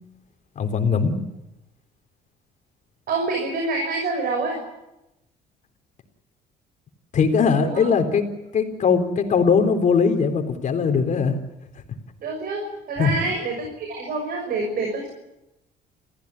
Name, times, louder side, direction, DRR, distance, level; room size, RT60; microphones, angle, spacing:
voice 1, 0.6-1.2 7.1-8.3 8.5-11.4 13.0-13.1, left 5 dB, 45° left, 6 dB, 3.9 m, -20 dB
voice 2, 3.1-4.6 7.6-7.8 12.2-15.1, right 3 dB, 60° right, 2 dB, 6.3 m, -27 dB
29.0 x 15.5 x 10.0 m, 0.95 s
cardioid pair, 110°, 17 cm